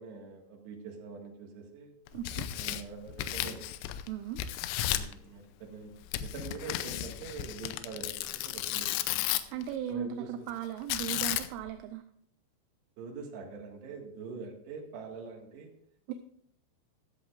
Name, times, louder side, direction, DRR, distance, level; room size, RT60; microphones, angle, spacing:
voice 1, 0.0-1.9 2.5-3.7 4.8-5.9 6.2-8.9 9.9-10.5 13.0-15.7, right 5 dB, 65° right, 1 dB, 3.6 m, -44 dB
Tearing, 2.1-4.1 4.4-5.1 6.1-9.6 10.9-11.7, left 13 dB, 85° left, 3.3 m, -34 dB
voice 2, 2.1-2.5 4.1-4.4 9.5-12.0 16.1-16.2, right 9 dB, 80° right, 7 dB, 3.1 m, -37 dB
14.5 x 13.0 x 2.5 m, 0.67 s
omnidirectional pair, 5.8 m